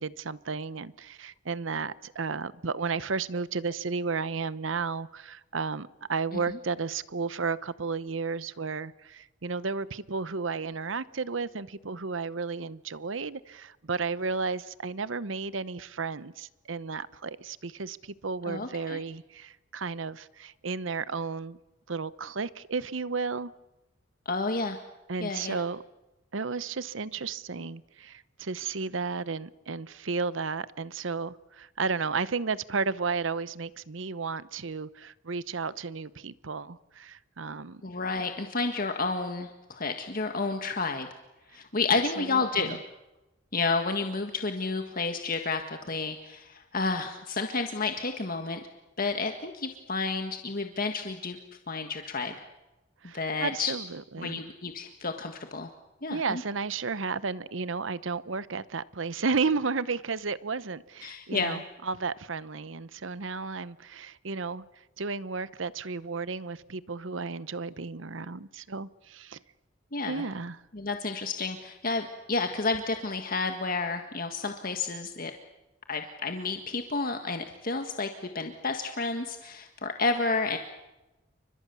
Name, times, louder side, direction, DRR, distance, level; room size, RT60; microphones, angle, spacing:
voice 1, 0.0-21.6 21.9-23.5 25.1-25.8 26.3-37.8 42.2-42.8 53.0-54.4 56.1-64.6 65.0-69.4 70.1-70.6, right 4 dB, 80° right, 0.9 m, -33 dB
voice 2, 18.5-19.0 24.3-24.8 25.2-25.6 37.8-41.1 41.5-42.8 43.5-48.6 49.0-51.4 51.7-52.3 53.1-53.7 54.2-55.7 56.0-56.4 61.0-61.6 69.9-70.2 70.7-75.3 75.9-80.6, left 3 dB, 45° left, 1.7 m, -31 dB
30.0 x 25.0 x 7.0 m
head